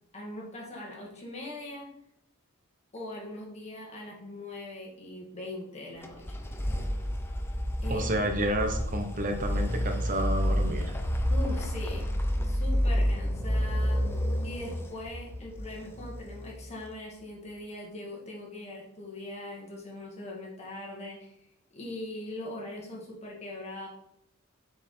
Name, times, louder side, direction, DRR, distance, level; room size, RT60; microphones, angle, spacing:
voice 1, 0.1-1.9 2.9-6.4 7.8-8.3 11.3-12.1 12.4-14.1 14.4-21.3 21.7-23.9, left 2 dB, 30° left, -3 dB, 2.0 m, -41 dB
sound 1, 6.0-16.8, equal, 10° left, 0.6 m, -30 dB
voice 2, 7.9-10.9, right 1 dB, 40° right, 5 dB, 0.8 m, -30 dB
6.7 x 4.8 x 4.3 m, 0.77 s
head